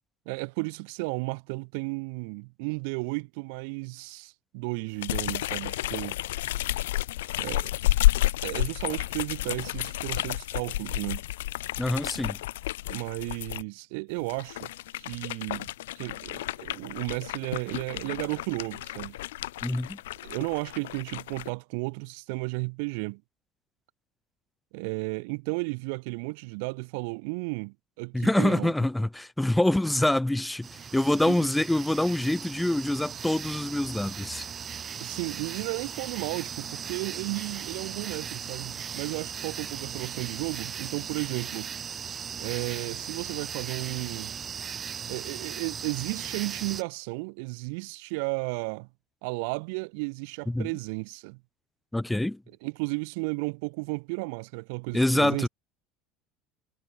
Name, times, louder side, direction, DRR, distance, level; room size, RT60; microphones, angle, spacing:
voice 1, 0.3-6.2 7.4-7.7 8.4-11.2 12.9-14.7 15.0-15.7 16.0-19.2 20.2-23.2 24.7-28.7 31.2-31.5 35.0-41.7 42.4-44.3 45.1-48.9 49.2-51.4 52.6-55.5, right 31 dB, 75° right, 0.8 m, -34 dB
sound 1, 5.0-13.6 14.2-21.5, left 16 dB, 90° left, 0.9 m, -31 dB
voice 2, 11.8-12.4 19.6-20.0 28.1-34.5 50.5-50.7 51.9-52.4 54.9-55.5, left 1 dB, 5° left, 0.7 m, -25 dB
sound 2, 30.6-46.8, right 7 dB, 35° right, 2.0 m, -38 dB
supercardioid pair, 95°, 0 cm